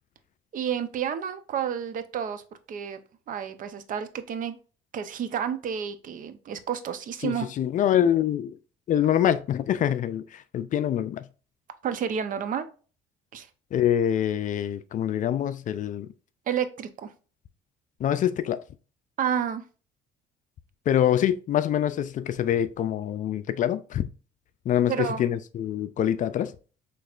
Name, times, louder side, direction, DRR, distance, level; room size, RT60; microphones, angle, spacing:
voice 1, 0.5-2.4 2.7-3.0 3.3-4.6 4.9-7.5 11.8-12.7 13.3-13.5 16.5-17.1 19.2-19.6 24.9-25.2, right 8 dB, 50° right, 0.7 m, -30 dB
voice 2, 7.2-8.6 8.9-11.3 13.7-16.1 18.0-18.6 20.9-24.1 24.7-26.5, left 10 dB, 50° left, 0.4 m, -25 dB
6.0 x 3.0 x 2.4 m
cardioid pair, 110°, 17 cm